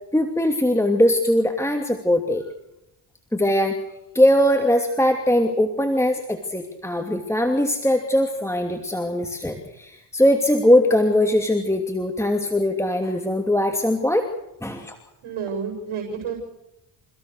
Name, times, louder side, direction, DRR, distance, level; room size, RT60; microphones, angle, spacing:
voice 1, 0.1-2.4 3.3-3.8 4.1-14.3 14.6-15.0, left 1 dB, 5° left, 4 dB, 2.7 m, -20 dB
voice 2, 15.2-16.4, right 6 dB, 85° right, 3 dB, 7.4 m, -30 dB
29.5 x 17.0 x 6.6 m, 0.87 s
cardioid pair, 80°, 48 cm